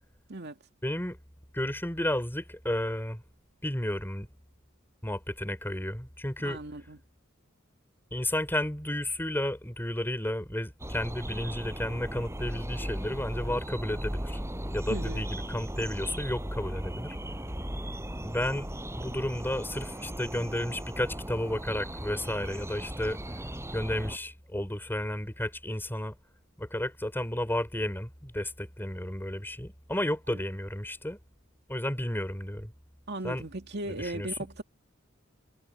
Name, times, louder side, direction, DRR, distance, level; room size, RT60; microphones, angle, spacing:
voice 1, 0.8-1.2 1.5-3.2 3.6-4.3 5.0-6.6 8.1-14.4 14.7-17.2 18.2-18.7 19.0-23.2 23.7-26.1 26.6-31.2 31.7-32.7 33.2-33.4 33.9-34.3, left 1 dB, 10° left, 4.9 m, -32 dB
voice 2, 6.4-7.0 14.9-15.2 30.3-30.4 33.1-34.6, right 2 dB, 55° right, 2.5 m, -37 dB
sound 1, 10.8-24.2, equal, 15° right, 6.0 m, -37 dB
head